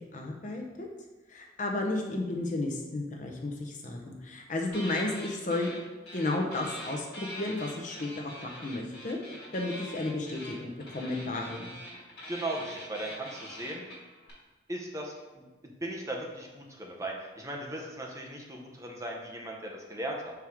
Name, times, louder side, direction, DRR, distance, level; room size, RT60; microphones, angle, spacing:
voice 1, 0.1-0.9 1.3-5.7 6.1-9.2 9.5-11.8, left 2 dB, 45° left, 1 dB, 0.8 m, -33 dB
sound 1, 4.7-5.8 6.1-14.3, left 1 dB, 60° left, 2.1 m, -44 dB
voice 2, 12.3-13.8 14.7-20.3, right 1 dB, 20° right, 0 dB, 0.7 m, -38 dB
6.4 x 4.6 x 3.6 m, 1.2 s
head